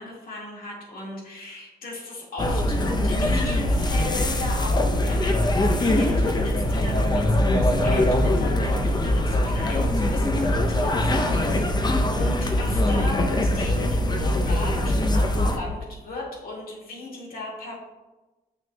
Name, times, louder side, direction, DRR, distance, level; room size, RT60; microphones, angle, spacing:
voice 1, 0.0-11.7 12.1-17.7, left 2 dB, 75° left, -3 dB, 1.9 m, -36 dB
sound 1, 2.4-15.6, left 1 dB, 30° left, 0.6 m, -22 dB
7.0 x 6.2 x 2.2 m, 1.1 s
cardioid pair, 95°, 15 cm